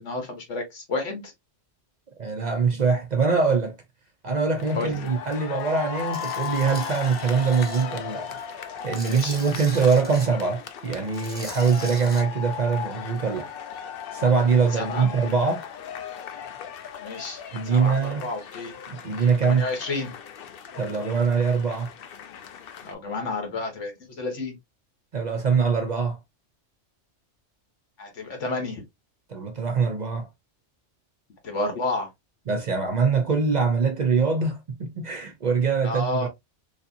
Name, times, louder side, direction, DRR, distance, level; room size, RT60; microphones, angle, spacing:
voice 1, 0.0-1.3 4.7-5.1 9.0-9.4 14.7-15.1 17.0-17.4 17.7-18.8 19.4-20.1 22.8-24.6 28.0-28.8 31.4-32.1 35.8-36.3, left 2 dB, 85° left, 1.5 m, -31 dB
voice 2, 2.2-3.8 4.2-8.4 8.8-13.5 14.1-15.6 17.5-18.2 18.9-19.7 20.8-21.9 25.1-26.2 29.3-30.3 32.5-36.3, right 5 dB, 45° right, 0.6 m, -23 dB
sound 1, 4.6-22.9, left 8 dB, 60° left, 0.7 m, -37 dB
Tools, 6.1-7.8 8.3-10.3 11.0-12.2, equal, 10° left, 0.9 m, -40 dB
3.2 x 2.8 x 2.5 m
omnidirectional pair, 1.2 m